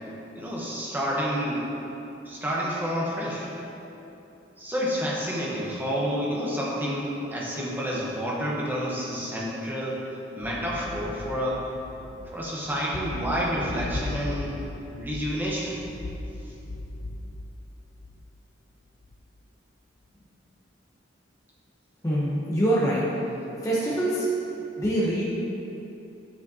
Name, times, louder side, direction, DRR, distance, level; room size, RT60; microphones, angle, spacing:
voice 1, 0.3-1.7 2.2-3.5 4.6-10.0 10.4-11.6 12.3-14.6 15.0-15.8 16.4-16.5, equal, 10° right, -5 dB, 1.0 m, -29 dB
sound 1, 10.4-18.4 19.0-19.4, left 2 dB, 50° left, 0.4 m, -37 dB
voice 2, 22.0-23.1 23.6-24.3 24.8-25.2, right 1 dB, 15° left, -8 dB, 0.8 m, -24 dB
9.3 x 4.8 x 2.8 m, 2.9 s
head